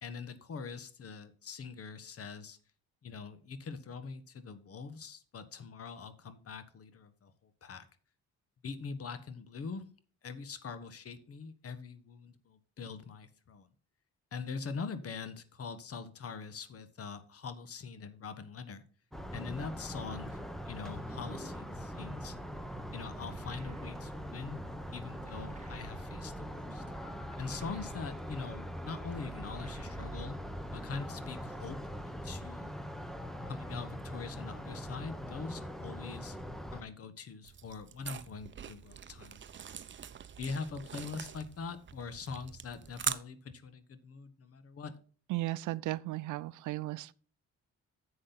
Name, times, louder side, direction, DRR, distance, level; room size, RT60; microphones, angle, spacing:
voice 1, 0.0-2.6 3.0-7.8 8.6-9.9 10.2-13.7 14.3-18.8 19.3-22.4 22.9-24.6 24.9-26.8 27.4-30.4 30.7-31.8 32.1-32.7 33.5-36.4 36.7-39.4 40.4-44.9, left 5 dB, 50° left, 1.4 m, -43 dB
sound 1, 19.1-36.8, equal, ahead, 1.1 m, -42 dB
sound 2, 23.2-24.3 25.3-26.4 27.3-28.4 29.4-30.5, right 4 dB, 25° right, 1.6 m, -52 dB
sound 3, 37.4-43.2, right 8 dB, 40° right, 0.7 m, -42 dB
voice 2, 45.3-47.1, right 17 dB, 80° right, 0.5 m, -35 dB
10.5 x 7.6 x 4.0 m
cardioid pair, 90°, 30 cm